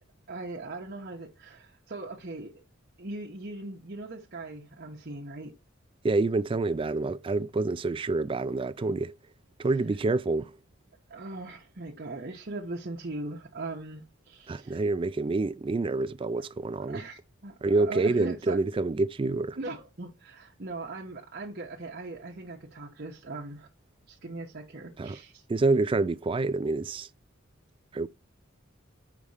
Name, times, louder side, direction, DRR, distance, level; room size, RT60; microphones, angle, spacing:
voice 1, 0.3-2.5 3.0-5.5 11.1-14.8 16.9-18.6 19.6-23.7 24.1-25.4, right 2 dB, 45° right, 1.0 m, -39 dB
voice 2, 6.0-9.1 9.6-10.6 14.5-17.0 17.6-19.6 25.0-25.2 25.5-27.1 27.9-28.1, right 3 dB, 25° right, 0.3 m, -27 dB
5.1 x 4.1 x 4.9 m
head